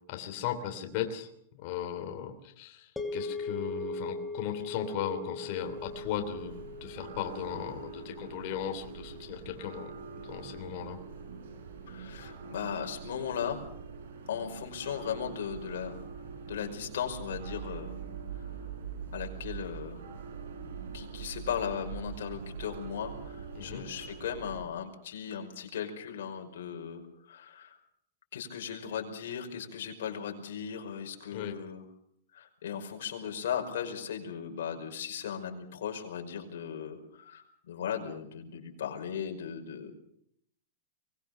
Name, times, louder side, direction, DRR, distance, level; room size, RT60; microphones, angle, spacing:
voice 1, 0.1-1.3 1.6-9.9 10.3-11.0 23.5-23.9 31.3-31.6, left 9 dB, 45° left, 6 dB, 3.1 m, -37 dB
sound 1, 3.0-11.2, left 3 dB, 5° left, 2.9 m, -41 dB
sound 2, 5.6-24.6, right 6 dB, 75° right, 5.8 m, -44 dB
voice 2, 11.9-13.6 14.3-16.0 16.5-18.0 18.4-18.5 19.1-20.0 20.9-27.8 28.3-31.9 32.3-39.9, left 8 dB, 75° left, 3 dB, 5.5 m, -37 dB
24.0 x 20.0 x 6.8 m, 0.69 s
supercardioid pair, 155°, 0 cm